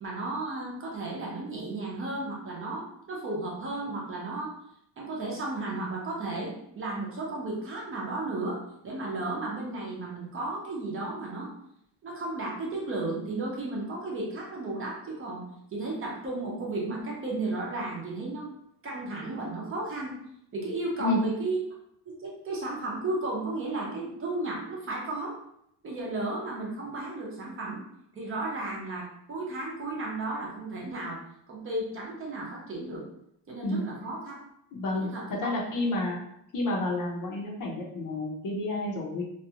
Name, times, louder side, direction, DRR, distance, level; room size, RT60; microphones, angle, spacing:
voice 1, 0.0-4.5 5.0-11.5 12.0-15.4 15.7-18.5 18.8-20.1 20.5-21.6 22.1-25.4 25.8-27.8 28.1-31.2 31.5-33.0 33.5-34.4 34.9-35.2, right 2 dB, 35° right, -3 dB, 0.6 m, -34 dB
voice 2, 34.7-36.2 36.5-39.2, left 2 dB, 55° left, -1 dB, 0.6 m, -30 dB
2.5 x 2.2 x 2.8 m, 0.75 s
cardioid pair, 155°, 40 cm